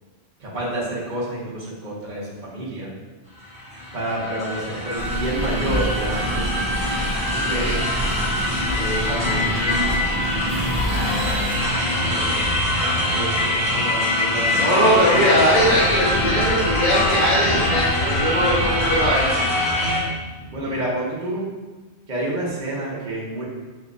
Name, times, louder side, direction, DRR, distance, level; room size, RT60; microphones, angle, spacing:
voice 1, 0.4-2.9 3.9-6.6 7.4-7.9 8.7-10.0 11.5-12.4 12.8-15.4 20.5-21.4 22.1-23.4, right 1 dB, 45° right, -7 dB, 1.0 m, -29 dB
sound 1, 3.4-20.0, left 1 dB, 5° right, 1.1 m, -23 dB
Engine, 5.0-12.8 13.4-13.5, equal, 25° right, 0.7 m, -29 dB
voice 2, 7.4-7.8 14.6-19.4 20.4-20.5, equal, 45° left, -9 dB, 0.9 m, -20 dB
6.7 x 2.8 x 2.4 m, 1.3 s
omnidirectional pair, 1.2 m